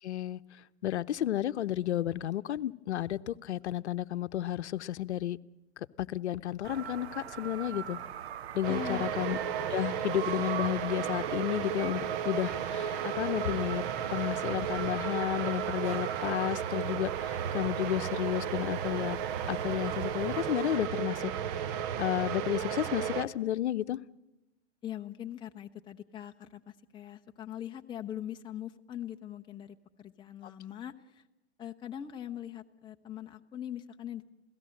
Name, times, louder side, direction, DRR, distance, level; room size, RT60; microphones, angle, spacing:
voice 1, 0.0-0.4 0.8-5.4 5.8-8.0 8.5-9.4 9.7-13.8 14.1-19.2 19.5-21.3 22.0-24.0, left 12 dB, 75° left, 14 dB, 0.8 m, -32 dB
sound 1, 6.6-20.8, right 9 dB, 65° right, 1.1 m, -41 dB
sound 2, 8.6-23.3, right 9 dB, 45° right, 1.1 m, -34 dB
voice 2, 8.7-9.0 24.8-31.2 31.6-34.3, left 10 dB, 15° left, 4 dB, 0.7 m, -42 dB
28.0 x 17.0 x 7.7 m, 0.97 s
hypercardioid pair, 125°, 34 cm